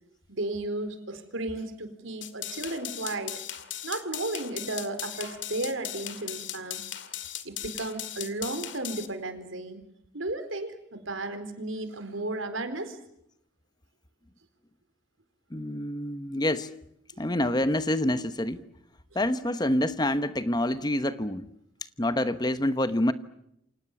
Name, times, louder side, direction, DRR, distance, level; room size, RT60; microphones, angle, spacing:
voice 1, 0.3-3.4 3.8-6.9 7.4-9.8 10.1-13.0, right 2 dB, 80° right, 4.2 m, -34 dB
sound 1, 2.2-9.1, left 11 dB, 65° left, 2.3 m, -38 dB
voice 2, 15.5-16.7 17.2-18.6 19.1-21.4 22.0-23.1, left 1 dB, 20° left, 1.0 m, -27 dB
28.5 x 25.5 x 7.3 m
head